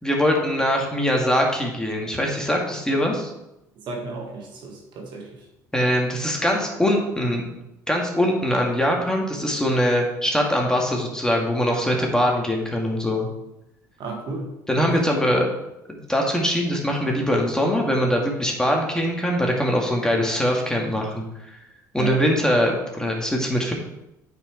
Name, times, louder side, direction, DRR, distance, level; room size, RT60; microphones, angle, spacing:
voice 1, 0.0-3.3 5.7-7.5 7.9-13.3 14.7-15.5 15.9-21.3 21.9-23.7, equal, 5° left, 0 dB, 2.2 m, -22 dB
voice 2, 3.8-5.4 14.0-14.5 14.8-15.0 21.9-22.1, right 3 dB, 55° right, 1 dB, 1.7 m, -33 dB
8.7 x 5.1 x 4.6 m, 0.90 s
hypercardioid pair, 60°, 9 cm